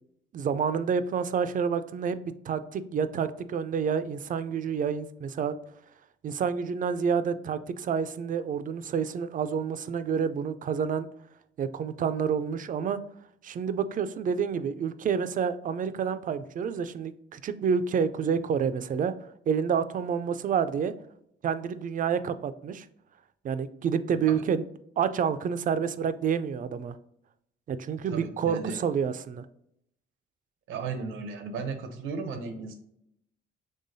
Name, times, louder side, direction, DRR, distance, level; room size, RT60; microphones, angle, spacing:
voice 1, 0.3-2.2 2.4-5.6 6.2-11.1 11.6-13.0 13.4-19.1 19.5-20.9 21.4-22.9 23.4-24.6 25.0-26.9 27.7-29.5, right 7 dB, 45° right, 12 dB, 0.4 m, -28 dB
voice 2, 28.1-28.8 30.7-32.7, right 4 dB, 85° right, 7 dB, 0.7 m, -35 dB
5.5 x 3.4 x 2.6 m, 0.76 s
cardioid pair, 90°, 20 cm